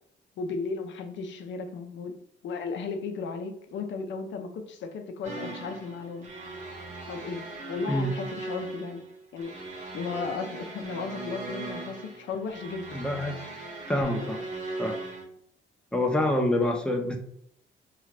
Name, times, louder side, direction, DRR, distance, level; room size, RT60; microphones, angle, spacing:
voice 1, 0.4-2.1 2.4-6.3 7.1-7.4 7.7-9.0 9.3-9.5 9.9-13.0 14.2-14.3, left 4 dB, 70° left, 6 dB, 0.6 m, -35 dB
sound 1, 5.2-15.2, right 2 dB, 40° right, 0.9 m, -39 dB
voice 2, 12.9-13.5 13.9-14.4 14.8-15.0 15.9-17.2, left 1 dB, 5° left, 3 dB, 0.6 m, -26 dB
2.7 x 2.4 x 3.2 m, 0.69 s
cardioid pair, 90°, 20 cm